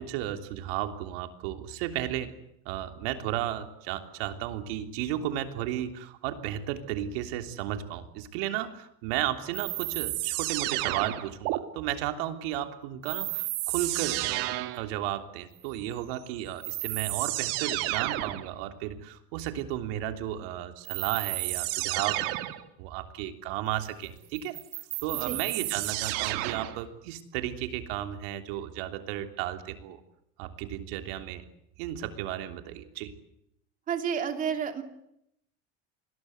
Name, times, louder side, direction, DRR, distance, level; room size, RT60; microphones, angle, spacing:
voice 1, 0.0-2.3 2.6-22.3 22.8-24.6 25.0-30.0 30.4-31.4 31.8-33.1, right 12 dB, 75° right, 7 dB, 3.3 m, -34 dB
sound 1, 9.5-11.6 13.0-14.9 16.1-16.2 16.6-18.5 20.9-22.7 24.4-26.8, right 18 dB, 60° right, 2.2 m, -31 dB
voice 2, 33.9-34.8, right 7 dB, 25° right, 7 dB, 2.8 m, -30 dB
28.0 x 21.0 x 8.0 m, 0.78 s
cardioid pair, 175°, 29 cm